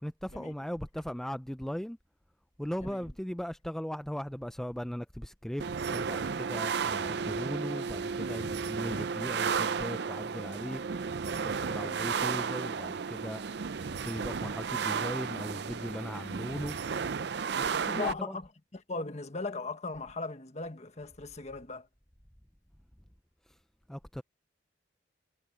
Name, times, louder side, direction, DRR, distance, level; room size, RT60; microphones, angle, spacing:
voice 1, 0.0-2.0 2.6-10.8 11.4-13.4 14.0-16.8 17.6-18.4 23.9-24.2, equal, 5° left, 0.4 m, -38 dB
sound 1, 5.6-18.1, right 6 dB, 65° right, 0.5 m, -33 dB
voice 2, 17.9-18.4 18.7-21.9, left 3 dB, 40° left, 1.4 m, -38 dB
head